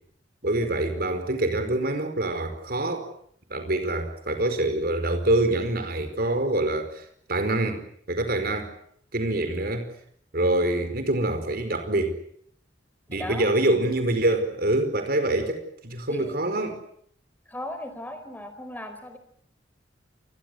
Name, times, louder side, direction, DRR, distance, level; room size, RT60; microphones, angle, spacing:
voice 1, 0.4-3.1 3.5-7.8 8.1-8.7 9.1-9.9 10.3-12.2 13.1-16.8, right 1 dB, 55° right, 8 dB, 5.0 m, -25 dB
voice 2, 13.1-13.5 16.1-16.4 17.5-19.2, left 1 dB, 10° left, 8 dB, 4.7 m, -36 dB
28.5 x 22.0 x 8.1 m, 0.66 s
head